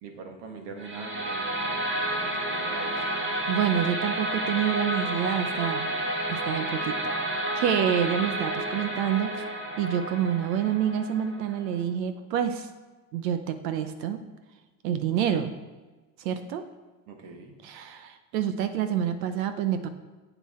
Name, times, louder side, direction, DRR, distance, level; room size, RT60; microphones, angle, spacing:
voice 1, 0.0-3.2 17.1-17.6, right 4 dB, 55° right, 4 dB, 1.8 m, -43 dB
sound 1, 0.8-11.8, right 1 dB, 25° right, 1.5 m, -31 dB
voice 2, 3.5-7.0 7.6-9.4 9.8-12.7 13.1-14.2 14.8-15.5 16.2-16.6 17.6-19.9, right 9 dB, 80° right, 9 dB, 0.8 m, -28 dB
8.2 x 6.9 x 4.3 m, 1.3 s
supercardioid pair, 95°, 49 cm